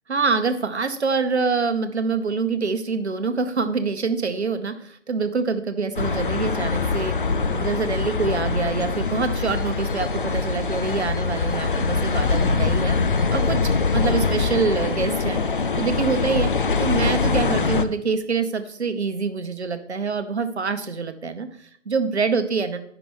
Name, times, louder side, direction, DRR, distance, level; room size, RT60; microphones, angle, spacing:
voice 1, 0.1-13.6 13.9-15.4 15.7-16.5 16.8-22.8, right 4 dB, 65° right, 9 dB, 0.9 m, -25 dB
sound 1, 6.0-17.8, left 4 dB, 45° left, 0.5 m, -23 dB
sound 2, 9.5-14.7, left 2 dB, 15° left, 1.0 m, -41 dB
8.5 x 5.8 x 3.6 m, 0.63 s
figure-of-eight pair, 140°, 36 cm